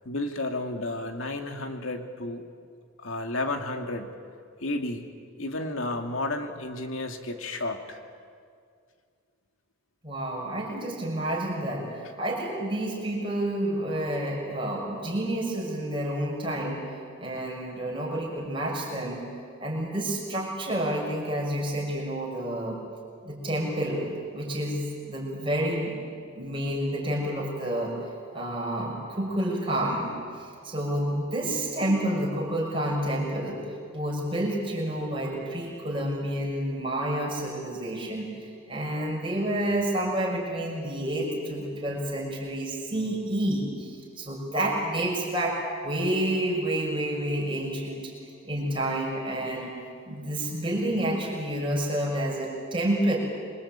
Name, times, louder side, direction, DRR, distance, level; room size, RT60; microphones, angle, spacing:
voice 1, 0.0-2.4 3.0-4.1 4.6-5.0 5.4-8.0, left 2 dB, 65° left, 5 dB, 2.5 m, -32 dB
voice 2, 10.0-11.9 12.2-16.8 17.2-19.2 19.6-22.8 23.2-24.1 24.3-26.0 26.3-28.0 28.3-33.6 33.9-38.3 38.7-48.1 48.4-49.8 50.1-53.2, right 1 dB, 25° right, -2 dB, 6.4 m, -29 dB
27.5 x 23.5 x 8.9 m, 2.2 s
head